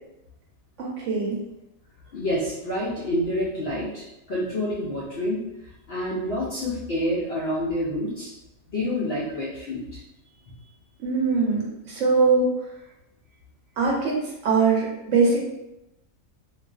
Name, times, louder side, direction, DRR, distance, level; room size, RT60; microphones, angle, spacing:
voice 1, 0.8-1.4 11.0-12.5 13.8-15.4, right 4 dB, 65° right, -3 dB, 0.9 m, -22 dB
voice 2, 2.1-8.3 8.7-10.0, left 1 dB, 65° left, -6 dB, 0.6 m, -28 dB
2.4 x 2.3 x 2.3 m, 0.91 s
omnidirectional pair, 1.5 m